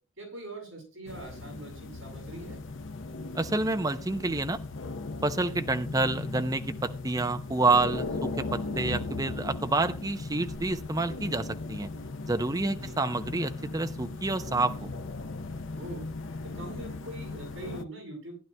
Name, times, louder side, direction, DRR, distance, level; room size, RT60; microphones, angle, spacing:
voice 1, 0.2-2.6 12.7-13.0 15.8-16.1 16.4-18.4, right 1 dB, 65° right, 0 dB, 6.9 m, -42 dB
sound 1, 1.1-17.8, left 3 dB, 65° left, 0.7 m, -38 dB
voice 2, 3.3-4.6 5.2-11.9 12.3-14.9, right 3 dB, 15° right, 8 dB, 0.5 m, -28 dB
18.0 x 10.5 x 2.2 m, 0.36 s
head